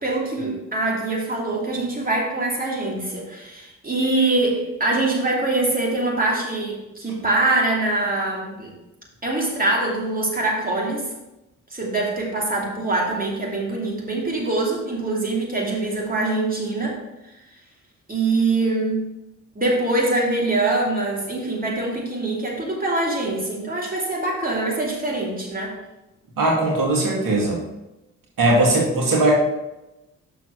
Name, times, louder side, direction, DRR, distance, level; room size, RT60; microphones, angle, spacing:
voice 1, 0.0-8.7 9.2-11.1 11.7-17.0 18.1-19.0 19.6-25.7, right 2 dB, 25° right, -3 dB, 2.7 m, -24 dB
voice 2, 26.4-27.6 28.4-29.3, right 2 dB, 60° right, -1 dB, 2.3 m, -19 dB
6.0 x 4.6 x 6.5 m, 0.97 s
hypercardioid pair, 40°, 37 cm